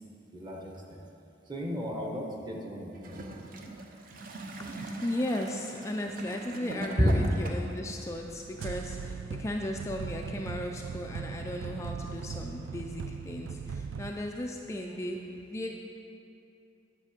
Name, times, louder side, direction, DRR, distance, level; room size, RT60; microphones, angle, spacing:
voice 1, 0.3-1.0 1.5-3.2 7.0-7.1, equal, 25° right, 0 dB, 1.1 m, -32 dB
Gurgling / Toilet flush, 2.9-7.8 8.7-8.8, right 2 dB, 50° right, 0.7 m, -41 dB
voice 2, 4.6-15.7, left 1 dB, 15° left, 1 dB, 0.4 m, -36 dB
sound 1, 8.1-14.1, right 6 dB, 75° right, 0.3 m, -39 dB
9.8 x 6.2 x 5.1 m, 2.8 s
head